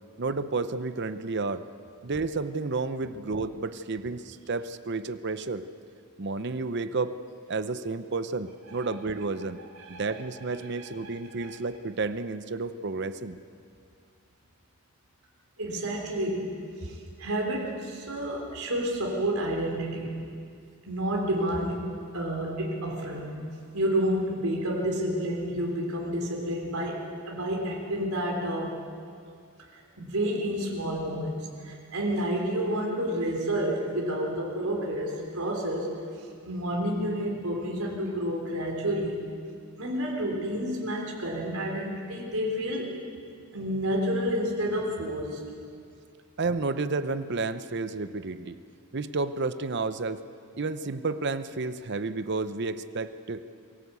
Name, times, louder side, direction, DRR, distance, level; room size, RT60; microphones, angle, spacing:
voice 1, 0.2-1.6 2.0-5.6 6.2-7.2 7.5-9.6 9.9-13.4 46.4-48.6 48.9-50.2 50.6-53.4, right 3 dB, 50° right, 12 dB, 0.7 m, -31 dB
voice 2, 15.6-16.5 16.8-20.1 20.9-23.4 23.7-28.7 29.7-35.9 36.4-39.2 39.8-42.9 43.5-45.5, equal, 75° right, -1 dB, 3.5 m, -30 dB
23.5 x 16.5 x 8.3 m, 2.3 s
head